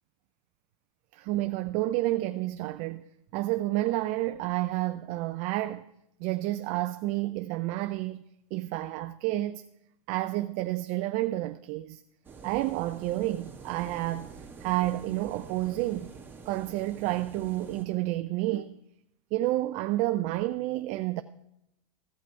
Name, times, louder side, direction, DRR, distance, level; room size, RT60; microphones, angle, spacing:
voice 1, 1.1-3.1 3.3-5.9 6.2-8.2 8.5-9.6 10.1-12.0 12.4-16.1 16.5-18.8 19.3-21.2, right 16 dB, 40° right, 0.4 m, -30 dB
sound 1, 12.2-17.8, right 5 dB, 10° right, 2.0 m, -47 dB
14.5 x 5.8 x 4.6 m
hypercardioid pair, 120°, 18 cm